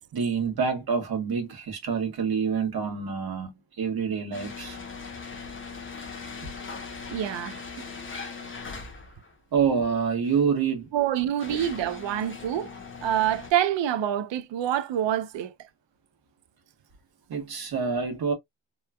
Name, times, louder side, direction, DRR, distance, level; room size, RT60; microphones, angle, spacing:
voice 1, 0.1-3.5 3.8-4.8 9.5-10.9 11.5-11.6 17.3-18.3, right 6 dB, 55° right, 1.1 m, -27 dB
sound 1, 4.3-9.3 10.2-10.4 11.0-13.5, left 5 dB, 30° left, 0.7 m, -40 dB
voice 2, 7.1-7.8 10.9-12.7 13.0-15.7, right 11 dB, 85° right, 0.5 m, -27 dB
3.0 x 2.1 x 2.2 m
wide cardioid pair, 145°, 43 cm